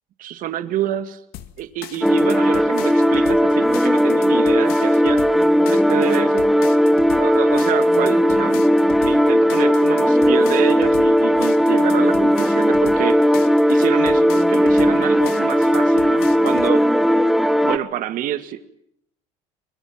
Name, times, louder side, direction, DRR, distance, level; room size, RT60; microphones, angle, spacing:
voice 1, 0.2-1.2 1.6-5.2 5.7-6.5 7.2-8.7 9.0-13.2 13.7-16.9 17.6-18.6, right 12 dB, 60° right, 11 dB, 1.9 m, -27 dB
sound 1, 1.3-16.7, left 14 dB, 75° left, 2.0 m, -39 dB
sound 2, 2.0-17.8, equal, ahead, 1.7 m, -17 dB
25.5 x 21.5 x 7.8 m, 0.74 s
supercardioid pair, 100°, 16 cm